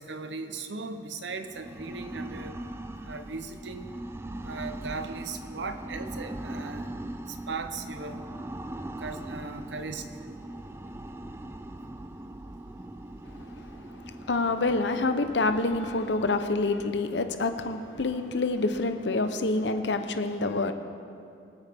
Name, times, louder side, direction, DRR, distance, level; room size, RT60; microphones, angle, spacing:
voice 1, 0.0-2.6 3.0-3.9 4.4-6.8 7.5-8.2 9.0-10.3, right 4 dB, 85° right, 0.9 m, -38 dB
sound 1, 1.4-20.1, right 1 dB, 15° right, 0.3 m, -41 dB
voice 2, 14.0-20.7, left 3 dB, 80° left, 0.9 m, -27 dB
24.0 x 9.1 x 3.6 m
head